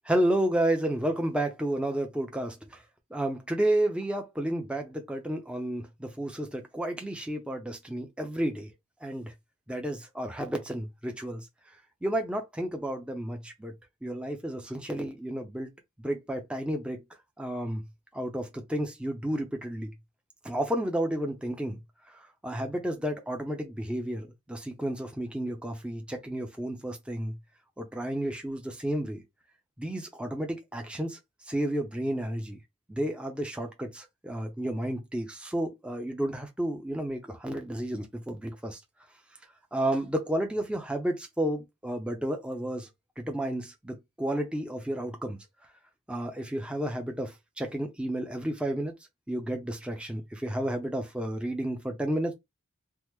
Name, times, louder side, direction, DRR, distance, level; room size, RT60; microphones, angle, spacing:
voice 1, 0.0-2.8 3.1-8.7 9.0-9.3 9.7-11.5 12.0-13.7 14.0-15.7 16.0-17.0 17.4-17.8 18.1-19.9 20.4-21.8 22.1-27.3 27.8-29.2 29.8-31.2 31.4-32.6 32.9-38.8 39.7-42.9 43.2-45.4 46.1-48.9 49.3-52.3, right 1 dB, 5° right, 0.5 m, -31 dB
3.4 x 2.0 x 2.9 m
head